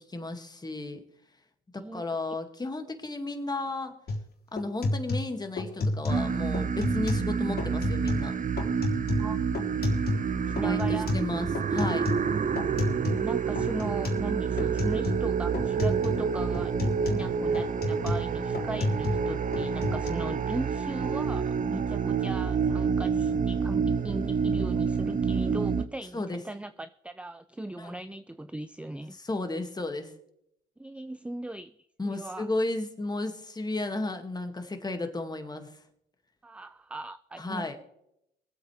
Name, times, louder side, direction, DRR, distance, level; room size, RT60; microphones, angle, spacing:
voice 1, 0.1-1.0 1.7-3.9 4.5-8.3 10.3-12.0 26.1-26.4 27.8-27.9 29.1-30.1 32.0-35.7 37.4-37.8, left 2 dB, 20° left, 6 dB, 2.2 m, -33 dB
sound 1, 4.1-4.3 4.6-6.3 6.5-7.3 7.6-8.3 8.6-10.3 10.6-13.3 13.5-14.3 14.6-15.3 15.5-16.2 16.5-19.3 19.5-20.1, left 2 dB, 50° left, 3.5 m, -31 dB
sound 2, 6.1-25.8, right 6 dB, 40° right, 0.9 m, -28 dB
voice 2, 10.5-11.1 13.1-29.2 30.8-31.7 32.0-32.5 36.4-37.8, right 2 dB, 5° right, 13 dB, 0.4 m, -38 dB
23.0 x 8.3 x 3.4 m, 0.77 s
cardioid pair, 90°, 20 cm